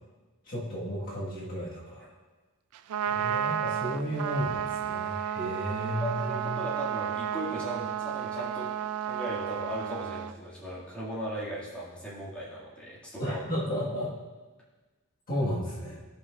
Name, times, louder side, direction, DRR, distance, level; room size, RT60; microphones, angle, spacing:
voice 1, 0.4-2.1 3.1-6.6 13.2-14.1 15.3-16.0, equal, 40° left, -6 dB, 1.5 m, -33 dB
Trumpet, 2.7-10.3, right 9 dB, 90° right, 0.3 m, -32 dB
voice 2, 5.7-8.7 9.1-13.4, right 1 dB, 5° left, -8 dB, 1.9 m, -37 dB
15.0 x 5.4 x 2.4 m, 1.3 s
head